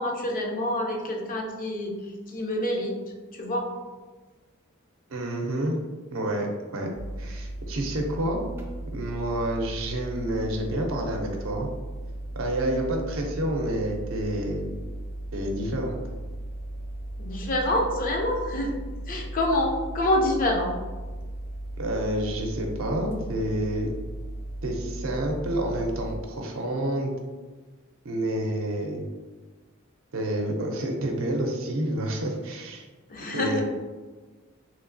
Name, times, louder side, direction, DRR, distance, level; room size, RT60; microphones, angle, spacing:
voice 1, 0.0-1.9 2.3-2.9 3.4-3.7 17.2-18.7 19.1-20.8 33.1-33.6, left 1 dB, 40° left, 1 dB, 0.5 m, -26 dB
voice 2, 5.1-5.8 6.1-6.9 7.2-8.5 8.9-11.7 12.4-14.7 15.3-16.0 21.8-23.9 24.6-27.1 28.0-29.1 30.1-32.9 33.3-33.6, right 1 dB, 70° right, 1 dB, 0.6 m, -29 dB
sound 1, 6.9-26.2, right 1 dB, 10° right, 0.4 m, -36 dB
3.1 x 2.8 x 2.6 m, 1.3 s
head